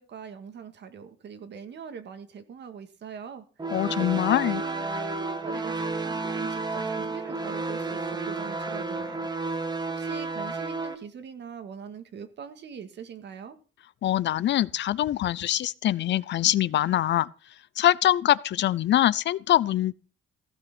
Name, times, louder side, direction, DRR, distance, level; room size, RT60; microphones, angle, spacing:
voice 1, 0.0-3.7 4.0-9.3 9.9-13.6, right 7 dB, 60° right, 1.8 m, -42 dB
sound 1, 3.6-10.9, right 3 dB, 20° right, 1.5 m, -31 dB
voice 2, 3.7-4.6 14.0-17.3 17.8-19.9, left 12 dB, 65° left, 0.6 m, -23 dB
15.5 x 6.2 x 6.1 m
cardioid pair, 90°, 20 cm